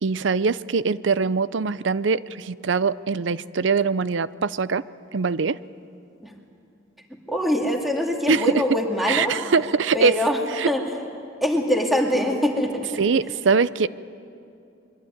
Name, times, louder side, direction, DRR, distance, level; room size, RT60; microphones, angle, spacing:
voice 1, 0.0-4.8 5.1-5.6 8.3-8.4 9.1-10.2 10.6-10.7 13.0-13.9, right 5 dB, 70° right, 17 dB, 0.6 m, -22 dB
voice 2, 7.3-9.3 9.9-10.4 10.7-10.8 11.4-13.0, equal, ahead, 1 dB, 2.4 m, -23 dB
24.0 x 23.0 x 9.4 m, 2.6 s
head